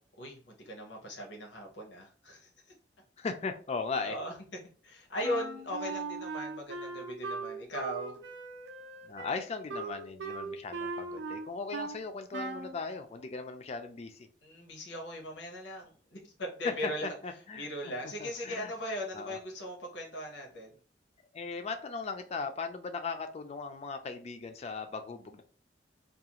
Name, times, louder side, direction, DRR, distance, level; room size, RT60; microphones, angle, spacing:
voice 1, 0.2-2.5 4.0-4.3 4.8-8.2 14.4-17.1 17.6-20.8, equal, 85° left, 1 dB, 0.7 m, -39 dB
voice 2, 3.2-4.2 9.0-14.3 16.6-16.9 17.2-17.7 18.0-18.7 19.1-19.4 21.3-25.4, left 4 dB, 35° left, 7 dB, 0.3 m, -38 dB
Wind instrument woodwind instrument, 5.2-12.0 12.3-12.8, right 3 dB, 75° right, 0.4 m, -39 dB
2.4 x 2.3 x 2.8 m, 0.40 s
head